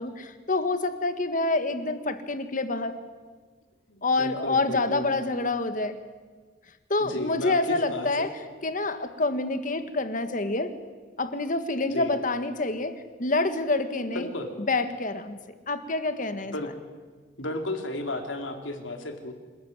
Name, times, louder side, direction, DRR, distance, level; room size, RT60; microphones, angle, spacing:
voice 1, 0.0-3.0 4.0-6.0 6.9-8.3 8.6-10.7 11.2-14.3 14.7-15.4 15.7-16.5, left 2 dB, 45° left, 9 dB, 1.6 m, -27 dB
voice 2, 3.9-5.1 7.0-8.3 11.9-12.1 14.1-14.5 16.5-16.7 17.4-19.3, left 1 dB, 80° left, 5 dB, 3.1 m, -33 dB
26.5 x 14.0 x 9.5 m, 1.5 s
head